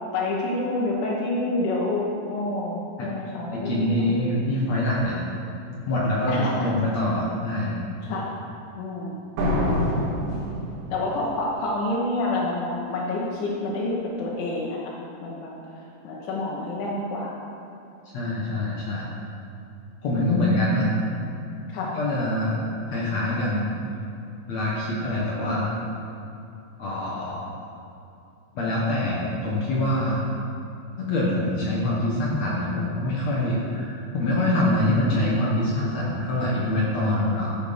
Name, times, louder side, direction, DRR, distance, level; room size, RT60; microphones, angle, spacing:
voice 1, 0.1-4.2 6.3-6.8 8.0-8.3 8.8-9.2 9.6-9.9 10.2-10.5 10.9-17.3 20.1-20.3 21.7-21.9, left 2 dB, 90° left, -5 dB, 3.7 m, -28 dB
voice 2, 3.5-5.2 5.9-7.7 18.1-19.1 20.0-20.9 21.9-22.6 22.9-23.7 24.5-25.7 26.8-27.5 28.5-30.2 31.0-37.5, left 1 dB, 65° left, -5 dB, 1.7 m, -24 dB
sound 1, 9.4-11.2, equal, 80° right, 4.2 m, -25 dB
13.5 x 8.1 x 5.2 m, 2.7 s
omnidirectional pair, 5.1 m